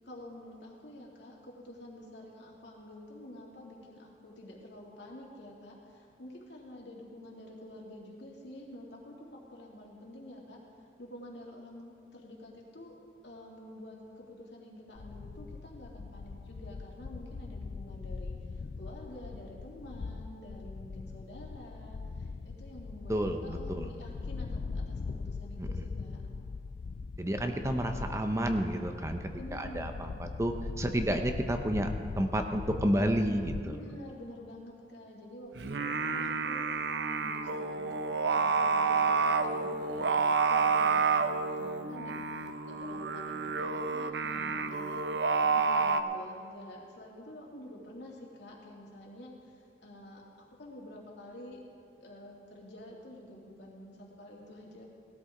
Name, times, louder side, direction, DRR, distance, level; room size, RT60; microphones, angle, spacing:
voice 1, 0.0-10.6 11.0-13.0 13.2-23.1 23.4-26.2 29.3-30.2 33.6-38.0 38.3-45.1 45.4-51.6 52.0-54.8, left 1 dB, 70° left, -2 dB, 2.5 m, -48 dB
sound 1, 15.0-33.6, left 4 dB, 50° left, 0.3 m, -41 dB
voice 2, 23.1-23.9 25.6-25.8 27.2-29.2 29.5-31.9 32.2-33.8, right 1 dB, 15° right, 6 dB, 0.6 m, -30 dB
Singing, 35.5-46.0, right 4 dB, 70° right, 0.6 m, -29 dB
18.0 x 13.0 x 3.8 m, 2.4 s
head